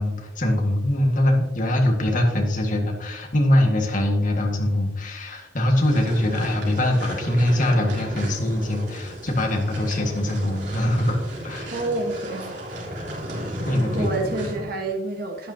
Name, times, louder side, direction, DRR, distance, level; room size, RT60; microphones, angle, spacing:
voice 1, 0.0-11.2 11.4-11.7 13.7-14.1, left 1 dB, 50° left, 2 dB, 1.8 m, -22 dB
sound 1, 5.7-14.7, equal, 90° right, 3.5 m, -34 dB
voice 2, 11.7-12.5 12.8-13.0 13.9-15.5, right 2 dB, 60° right, 2 dB, 1.4 m, -28 dB
12.0 x 9.2 x 2.8 m, 1.0 s
head